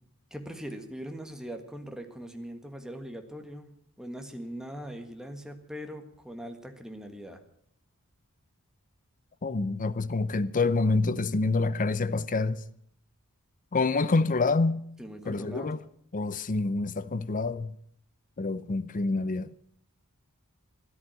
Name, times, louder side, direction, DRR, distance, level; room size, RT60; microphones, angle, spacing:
voice 1, 0.3-7.4 15.0-15.7, equal, 5° right, 1.6 m, -41 dB
voice 2, 9.4-12.6 13.7-14.8 15.3-15.8 16.1-17.7 18.4-19.5, left 3 dB, 35° left, 0.6 m, -27 dB
13.0 x 11.0 x 8.9 m
head